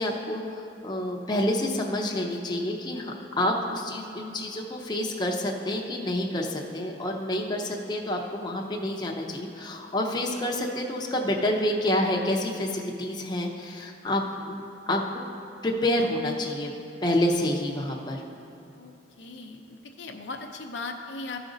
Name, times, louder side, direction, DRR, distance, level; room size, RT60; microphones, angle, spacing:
voice 1, 0.0-15.2 15.6-16.7 17.0-18.2, left 1 dB, 25° left, 0 dB, 0.7 m, -28 dB
voice 2, 18.7-21.4, left 3 dB, 75° left, 4 dB, 0.6 m, -38 dB
14.0 x 5.0 x 3.9 m, 2.7 s
head